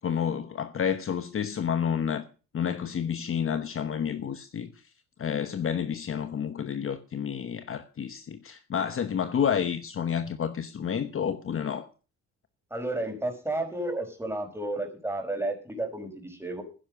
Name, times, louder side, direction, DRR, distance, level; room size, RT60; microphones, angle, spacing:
voice 1, 0.0-2.2 2.5-4.7 5.2-11.9, left 8 dB, 45° left, 1.0 m, -30 dB
voice 2, 12.7-16.6, right 2 dB, 10° right, 4.9 m, -32 dB
11.0 x 10.5 x 6.4 m
cardioid pair, 90°, 30 cm